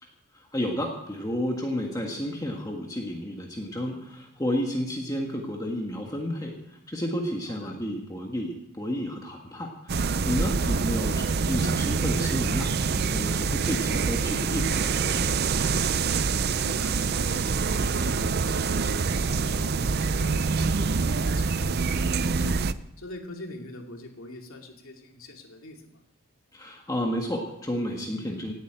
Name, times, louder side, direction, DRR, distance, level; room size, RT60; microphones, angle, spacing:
voice 1, 0.0-15.3 26.5-28.5, equal, 15° left, 1 dB, 1.5 m, -31 dB
voice 2, 7.5-7.8 10.6-10.8 16.3-22.6 23.0-26.0, left 1 dB, 75° left, 2 dB, 2.5 m, -43 dB
sound 1, 9.9-22.7, right 4 dB, 45° right, 0.5 m, -26 dB
17.5 x 8.2 x 8.9 m, 0.85 s
head